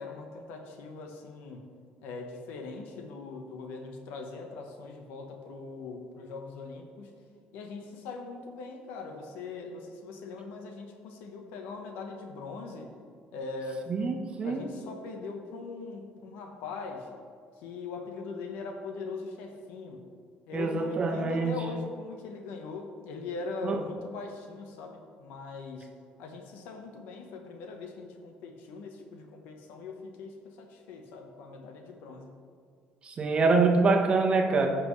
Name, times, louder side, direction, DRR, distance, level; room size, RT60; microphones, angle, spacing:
voice 1, 0.0-1.7 2.0-7.1 7.5-12.9 13.3-13.9 14.4-17.1 17.6-20.0 20.5-25.9 26.2-32.3, left 3 dB, 85° left, 4 dB, 1.1 m, -41 dB
voice 2, 13.9-14.6 20.5-21.5 23.6-23.8 33.0-34.7, right 3 dB, 35° right, 3 dB, 1.1 m, -25 dB
15.0 x 6.0 x 3.2 m, 2.2 s
cardioid pair, 115°, 3 cm